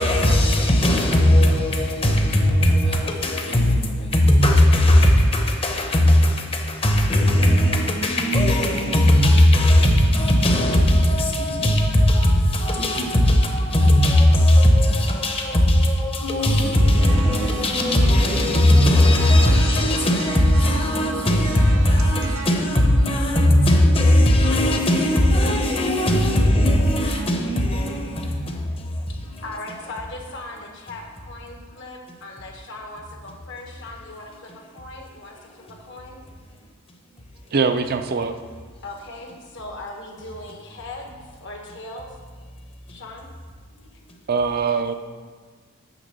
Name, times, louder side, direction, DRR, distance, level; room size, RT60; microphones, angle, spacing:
voice 1, 0.0-29.4 35.4-35.7 36.6-36.7, left 1 dB, 25° left, 0.9 m, -18 dB
sound 1, 16.5-22.6, right 3 dB, 75° right, 0.8 m, -35 dB
voice 2, 29.4-36.2 38.8-41.1 41.4-42.1 42.9-43.3, left 2 dB, 55° left, 1.2 m, -38 dB
voice 3, 37.5-38.4 44.3-44.9, right 5 dB, 45° right, 0.5 m, -22 dB
9.1 x 3.6 x 6.6 m
head